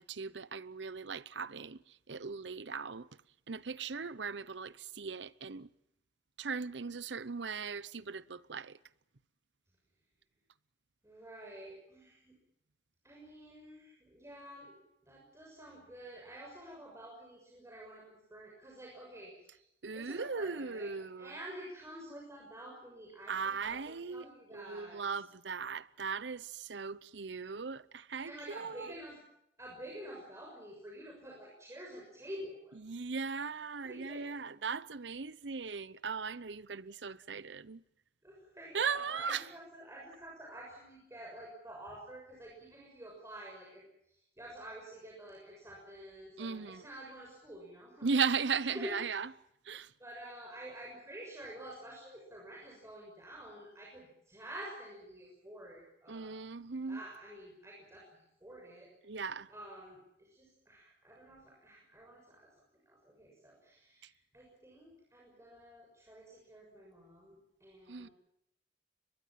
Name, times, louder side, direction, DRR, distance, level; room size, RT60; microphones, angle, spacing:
voice 1, 0.0-3.1 3.5-5.7 6.4-8.8 19.8-21.3 23.3-28.9 32.8-37.8 38.7-39.5 46.4-46.8 48.0-49.3 49.6-49.9 56.1-57.0 59.0-59.5 64.0-64.1 67.9-68.1, right 5 dB, 80° right, 0.9 m, -38 dB
voice 2, 11.0-12.4 13.0-18.0 18.3-19.6 19.9-20.9 21.2-25.0 28.2-29.2 29.6-32.8 33.8-34.3 38.2-48.1 48.7-48.9 50.0-56.3 56.9-58.9 59.5-62.5 62.8-68.1, right 1 dB, 15° right, 6.6 m, -49 dB
22.5 x 22.0 x 7.5 m
head